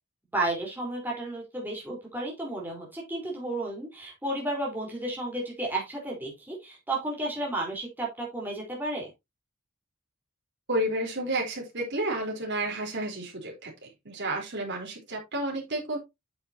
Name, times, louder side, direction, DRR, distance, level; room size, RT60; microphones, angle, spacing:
voice 1, 0.3-9.1, right 1 dB, 10° right, -3 dB, 3.8 m, -32 dB
voice 2, 10.7-16.0, right 1 dB, 55° right, 0 dB, 3.7 m, -31 dB
9.5 x 7.1 x 2.8 m, 0.21 s
head